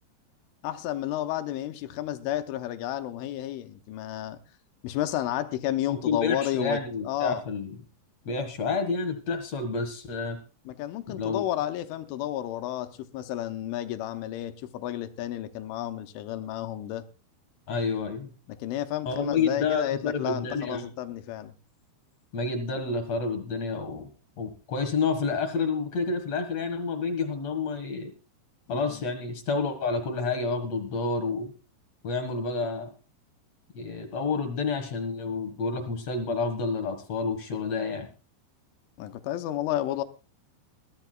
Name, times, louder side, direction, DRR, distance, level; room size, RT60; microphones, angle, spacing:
voice 1, 0.6-4.4 4.8-7.4 10.7-17.0 18.5-21.5 28.7-29.0 39.0-40.0, left 13 dB, 85° left, 3.3 m, -32 dB
voice 2, 5.9-7.7 8.2-10.4 11.1-11.5 17.7-18.3 19.0-20.9 22.3-24.1 24.4-28.1 28.7-31.5 32.0-32.9 33.7-38.1, left 4 dB, 65° left, 1.7 m, -29 dB
21.5 x 14.0 x 2.3 m
omnidirectional pair, 5.5 m